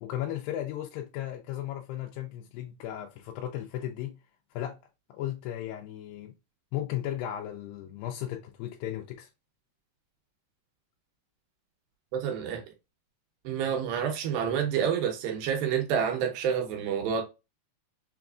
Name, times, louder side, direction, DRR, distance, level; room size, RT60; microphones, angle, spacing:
voice 1, 0.0-4.2 4.5-4.8 5.1-6.3 6.7-9.3, left 12 dB, 85° left, 2.3 m, -35 dB
voice 2, 12.1-12.6 13.4-17.2, right 8 dB, 85° right, 2.7 m, -28 dB
5.9 x 2.4 x 2.3 m
omnidirectional pair, 4.1 m